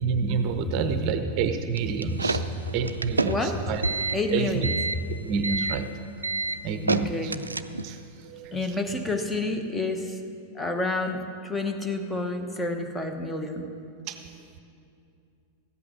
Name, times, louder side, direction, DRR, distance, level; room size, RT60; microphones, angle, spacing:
voice 1, 0.0-3.8 4.3-4.7 5.2-5.9 6.6-7.3 7.8-8.6 14.1-14.2, right 6 dB, 40° right, 8 dB, 0.7 m, -29 dB
sound 1, 1.8-8.0, right 3 dB, 80° right, 0.4 m, -29 dB
voice 2, 3.2-3.6 4.1-4.8 6.9-7.4 8.5-10.2 10.5-13.7, left 2 dB, 10° left, 5 dB, 1.0 m, -29 dB
14.5 x 8.5 x 6.3 m, 2.5 s
figure-of-eight pair, 90°, 0 cm